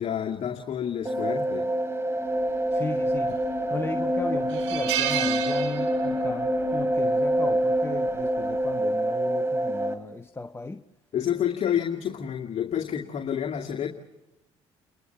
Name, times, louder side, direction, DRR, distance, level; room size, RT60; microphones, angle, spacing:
voice 1, 0.0-1.7 11.1-13.9, left 9 dB, 50° left, 2.3 m, -29 dB
sound 1, 1.0-9.9, right 1 dB, 20° right, 2.9 m, -26 dB
voice 2, 2.7-3.4 3.7-10.8, left 3 dB, 15° left, 1.0 m, -35 dB
sound 2, 3.1-3.6 4.0-4.1 4.5-6.3 6.6-6.8 8.1-8.4, right 12 dB, 85° right, 1.8 m, -30 dB
29.5 x 22.0 x 6.0 m
hypercardioid pair, 60°, 14 cm